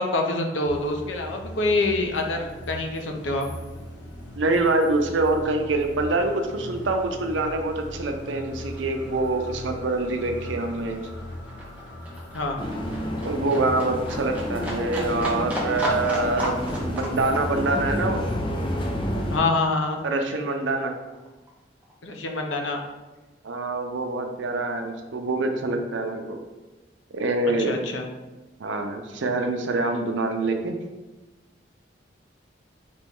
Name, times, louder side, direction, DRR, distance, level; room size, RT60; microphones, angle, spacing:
voice 1, 0.0-3.5 12.3-12.6 19.3-20.0 22.0-22.8 27.4-28.1, left 2 dB, 90° left, 3 dB, 0.6 m, -26 dB
sound 1, 0.6-18.4, left 1 dB, 75° left, 1.0 m, -40 dB
voice 2, 4.4-11.1 13.2-18.2 20.0-20.9 23.4-26.4 27.1-27.8 28.6-30.8, right 2 dB, 90° right, 5 dB, 0.6 m, -25 dB
Livestock farm animals working animals, 9.5-20.2 20.5-21.5 21.8-21.9, equal, 10° right, 0.7 m, -35 dB
sound 2, 12.6-19.4, left 1 dB, 30° left, 0.5 m, -30 dB
4.2 x 3.0 x 3.6 m, 1.2 s
head